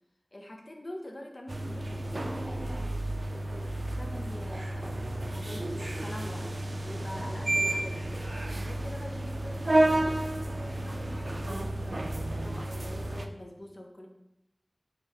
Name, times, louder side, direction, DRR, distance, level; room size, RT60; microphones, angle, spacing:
voice 1, 0.3-3.0 3.3-10.2 10.5-14.1, left 1 dB, 65° left, 2 dB, 0.7 m, -45 dB
sound 1, 1.5-13.3, right 1 dB, 70° right, 0.3 m, -31 dB
4.2 x 3.1 x 3.9 m, 0.88 s
wide cardioid pair, 40°, 0 cm